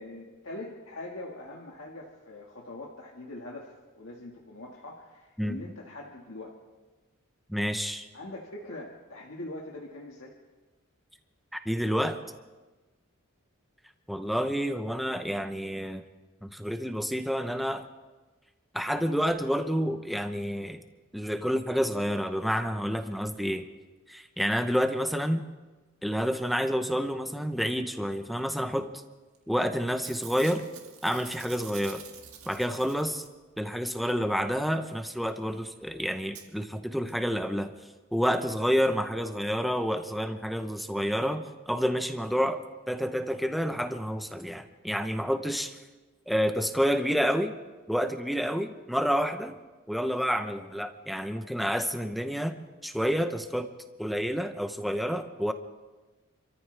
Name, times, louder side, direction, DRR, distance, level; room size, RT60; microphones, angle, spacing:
voice 1, 0.0-6.6 8.1-10.3, left 2 dB, 65° left, -2 dB, 1.8 m, -42 dB
voice 2, 7.5-8.1 11.5-12.2 14.1-16.0 16.4-17.9 18.7-20.8 21.1-23.6 24.1-25.4 26.0-29.0 29.5-30.7 31.0-32.0 32.5-33.2 33.6-37.7 38.1-45.8 46.3-47.6 47.9-49.6 49.9-53.7 54.0-55.5, equal, ahead, 7 dB, 0.8 m, -29 dB
Packing tape duct tape / Tearing, 29.3-29.6 29.9-33.5 35.4-35.5 35.6-35.7 36.3-36.4 37.1-37.2 37.4-37.5, right 8 dB, 90° right, 1.9 m, -47 dB
29.5 x 14.0 x 3.4 m, 1.2 s
head